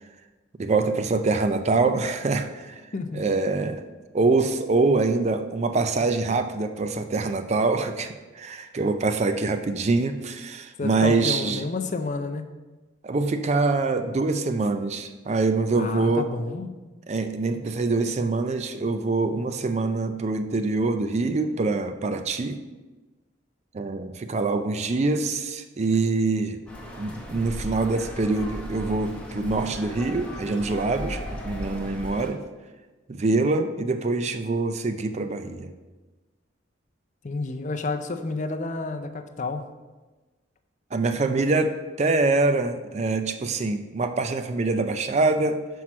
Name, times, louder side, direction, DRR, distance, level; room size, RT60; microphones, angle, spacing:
voice 1, 0.6-2.8 3.1-3.8 4.1-11.6 13.0-16.3 17.1-22.6 23.7-26.6 27.0-32.4 33.1-35.7 40.9-45.7, right 3 dB, 35° right, 9 dB, 0.4 m, -25 dB
voice 2, 10.8-12.5 15.8-16.8 37.2-39.7, left 3 dB, 40° left, 8 dB, 0.5 m, -30 dB
sound 1, 26.7-32.3, equal, 5° left, 0.9 m, -36 dB
5.8 x 4.6 x 6.1 m, 1.2 s
head